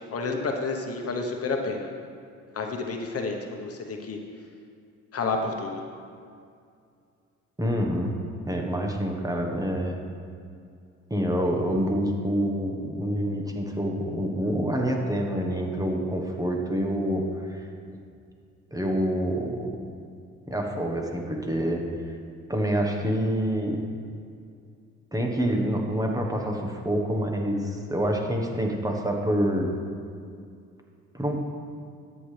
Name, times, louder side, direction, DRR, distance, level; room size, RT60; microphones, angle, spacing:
voice 1, 0.1-1.9 2.5-4.2 5.1-5.8, left 3 dB, 50° left, 3 dB, 1.1 m, -30 dB
voice 2, 7.6-8.1 8.4-10.0 11.1-17.6 18.7-19.8 20.5-21.8 22.5-23.8 25.1-29.7 31.1-31.4, equal, 10° right, 1 dB, 1.3 m, -27 dB
13.0 x 7.7 x 3.4 m, 2.4 s
cardioid pair, 90°, 30 cm